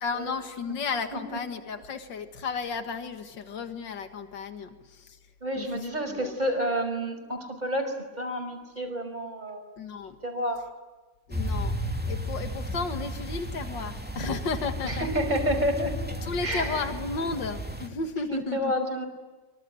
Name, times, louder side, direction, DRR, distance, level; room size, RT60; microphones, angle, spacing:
voice 1, 0.0-5.2 5.5-6.3 9.8-10.2 11.3-15.1 16.2-18.7, left 4 dB, 80° left, 8 dB, 2.4 m, -33 dB
voice 2, 5.4-9.7 10.2-10.7 14.2-14.3 14.8-16.0 16.4-16.8 18.3-19.0, equal, 25° right, 4 dB, 5.8 m, -29 dB
sound 1, 11.3-17.9, equal, 5° right, 2.5 m, -33 dB
25.0 x 25.0 x 9.4 m, 1.2 s
omnidirectional pair, 1.9 m